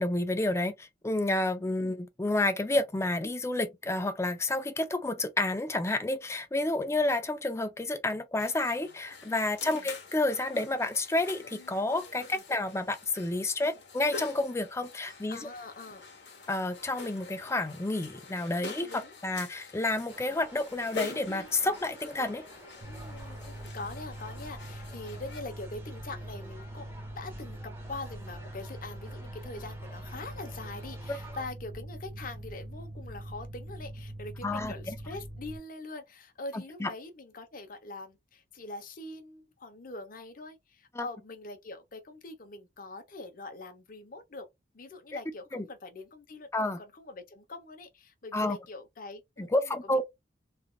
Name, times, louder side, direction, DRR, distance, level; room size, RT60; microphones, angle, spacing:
voice 1, 0.0-15.4 16.5-22.4 34.4-34.9 36.5-36.9 40.9-41.0 45.5-45.6 46.5-46.8 48.3-48.6 49.4-50.0, left 2 dB, 15° left, 0.4 m, -30 dB
sound 1, 8.4-25.4, left 4 dB, 80° left, 1.0 m, -46 dB
voice 2, 15.3-16.1 18.6-19.2 22.8-44.5 44.7-50.0, left 2 dB, 50° left, 0.7 m, -43 dB
sound 2, 20.1-31.4, equal, 15° right, 1.0 m, -52 dB
Mechanical fan, 22.8-35.6, right 1 dB, 65° right, 0.9 m, -43 dB
3.3 x 2.4 x 2.2 m
head